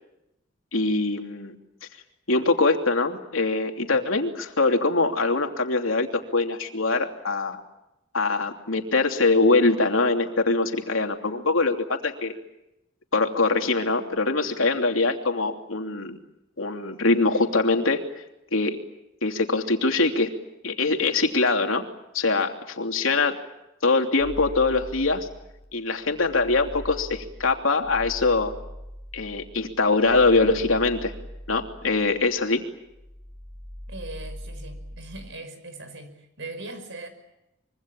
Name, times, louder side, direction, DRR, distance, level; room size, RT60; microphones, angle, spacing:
voice 1, 0.7-1.5 2.3-7.6 8.1-12.3 13.1-16.2 16.6-18.0 18.5-18.8 19.2-20.3 20.6-21.8 22.1-23.4 23.8-25.3 25.7-28.5 29.1-31.1 31.5-32.6, left 3 dB, 85° left, 4 dB, 3.0 m, -23 dB
sound 1, 24.2-25.6 26.0-32.6 32.9-35.2, equal, 30° left, 4.3 m, -41 dB
voice 2, 33.9-37.1, right 2 dB, 65° right, 10 dB, 5.6 m, -40 dB
25.5 x 24.0 x 9.0 m, 0.89 s
head